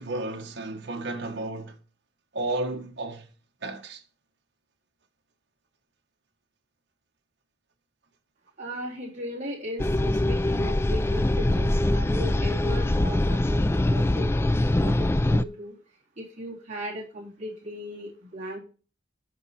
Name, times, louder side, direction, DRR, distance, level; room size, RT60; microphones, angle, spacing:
voice 1, 0.0-1.8 2.3-3.3 3.6-4.0, right 2 dB, 65° right, 1.4 m, -32 dB
voice 2, 8.6-14.3 14.7-15.8 16.2-18.6, equal, 40° right, 3.8 m, -37 dB
sound 1, 9.8-15.4, left 1 dB, 15° left, 0.3 m, -23 dB
13.0 x 5.2 x 4.3 m
head